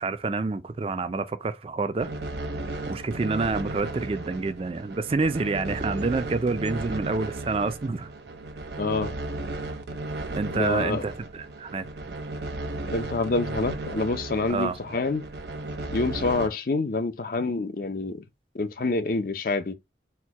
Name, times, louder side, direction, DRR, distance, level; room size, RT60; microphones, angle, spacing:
voice 1, 0.0-2.1 2.9-8.1 10.3-12.1 14.5-14.8, right 3 dB, 30° right, 0.4 m, -28 dB
sound 1, 2.0-16.5, right 2 dB, 70° right, 0.9 m, -35 dB
voice 2, 8.8-9.1 10.5-11.0 12.9-15.2 15.9-18.2 18.5-19.7, left 3 dB, 50° left, 0.6 m, -27 dB
4.4 x 2.2 x 4.5 m
head